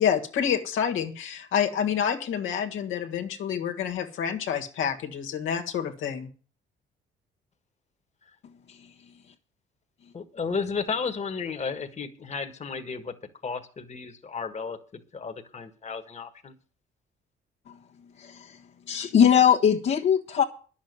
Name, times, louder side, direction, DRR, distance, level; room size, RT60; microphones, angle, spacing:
voice 1, 0.0-6.3, left 8 dB, 80° left, 3 dB, 1.9 m, -28 dB
voice 2, 10.1-13.1 13.4-16.5, left 5 dB, 35° left, 6 dB, 1.6 m, -33 dB
voice 3, 18.2-18.6 18.9-20.4, left 8 dB, 65° left, -4 dB, 1.5 m, -21 dB
10.5 x 7.3 x 9.4 m, 0.39 s
cardioid pair, 90°, 20 cm